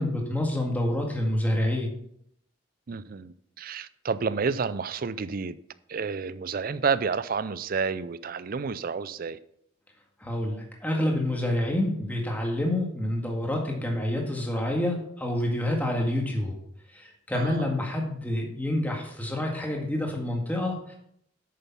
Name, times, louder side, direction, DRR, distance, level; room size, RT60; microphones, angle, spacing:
voice 1, 0.0-1.9 10.2-16.5 16.9-20.9, left 1 dB, 10° left, 1.9 m, -28 dB
voice 2, 2.9-5.6 5.9-9.4 17.3-17.7, right 5 dB, 45° right, 0.4 m, -30 dB
8.6 x 6.9 x 5.7 m
head